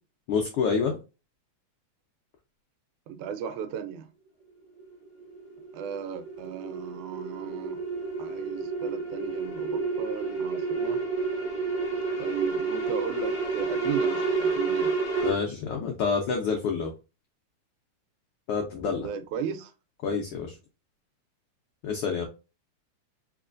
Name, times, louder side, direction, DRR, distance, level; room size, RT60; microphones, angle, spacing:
voice 1, 0.3-1.0 15.2-16.9 18.5-19.1 20.0-20.5 21.8-22.2, left 5 dB, 85° left, 1.2 m, -27 dB
voice 2, 3.1-4.1 5.7-7.8 8.2-11.0 12.2-14.9 19.0-19.7, right 8 dB, 90° right, 2.1 m, -36 dB
sound 1, 4.8-15.3, right 4 dB, 45° left, 1.0 m, -30 dB
4.3 x 3.0 x 2.5 m
omnidirectional pair, 3.4 m